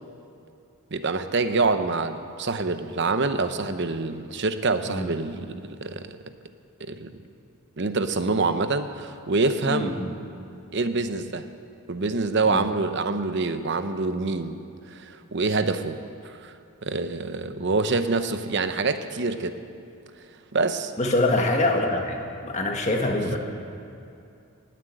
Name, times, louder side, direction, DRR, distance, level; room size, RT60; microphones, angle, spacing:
voice 1, 0.9-6.1 6.8-7.2 7.8-10.0 10.7-11.5 11.9-14.6 14.9-16.0 16.2-16.6 16.8-19.6 20.5-20.9 23.2-23.3, right 3 dB, 55° right, 10 dB, 0.8 m, -26 dB
voice 2, 9.6-10.1 12.4-12.6 17.6-17.7 21.0-23.4, left 2 dB, 30° left, 2 dB, 1.6 m, -25 dB
17.5 x 7.6 x 9.0 m, 2.6 s
head